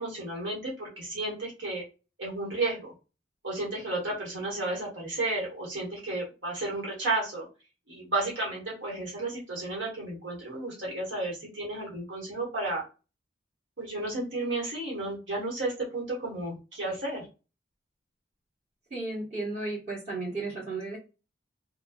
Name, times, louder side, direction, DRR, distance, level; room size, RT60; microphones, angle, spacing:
voice 1, 0.0-1.8 2.2-2.8 3.4-7.5 7.9-12.8 13.8-17.2, right 2 dB, 70° right, -4 dB, 1.2 m, -32 dB
voice 2, 18.9-21.0, right 2 dB, 35° right, -6 dB, 1.6 m, -34 dB
3.0 x 2.2 x 2.3 m, 0.31 s
head